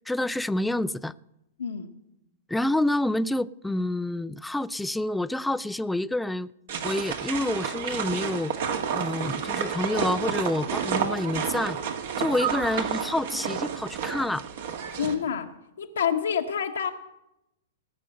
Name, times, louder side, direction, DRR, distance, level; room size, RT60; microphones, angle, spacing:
voice 1, 0.1-1.1 2.5-6.5 6.8-8.5 8.9-11.8 12.2-14.5, left 1 dB, 5° left, 0.4 m, -28 dB
voice 2, 1.6-1.9 14.9-15.5 15.8-16.9, left 8 dB, 75° left, 1.1 m, -28 dB
sound 1, 6.7-15.1, right 7 dB, 60° right, 1.9 m, -30 dB
18.0 x 6.6 x 7.8 m
figure-of-eight pair, 105°, 0 cm